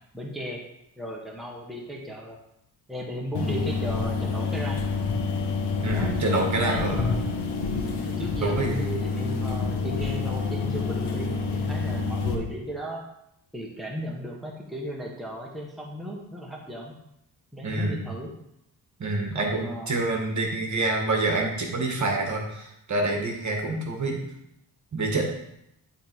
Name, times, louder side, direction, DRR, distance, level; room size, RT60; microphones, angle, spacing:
voice 1, 0.1-0.6 1.0-2.4 2.9-4.8 5.9-6.2 6.6-7.2 8.0-13.0 13.5-16.9 17.5-18.3 19.3-20.0, equal, ahead, -2 dB, 1.4 m, -36 dB
sound 1, 3.3-12.3, left 4 dB, 65° left, 1.3 m, -28 dB
voice 2, 5.8-7.1 8.4-8.8 17.6-18.1 19.0-24.2 24.9-25.2, right 2 dB, 45° right, 1 dB, 1.6 m, -27 dB
10.5 x 3.7 x 4.6 m, 0.81 s
cardioid pair, 100°, 42 cm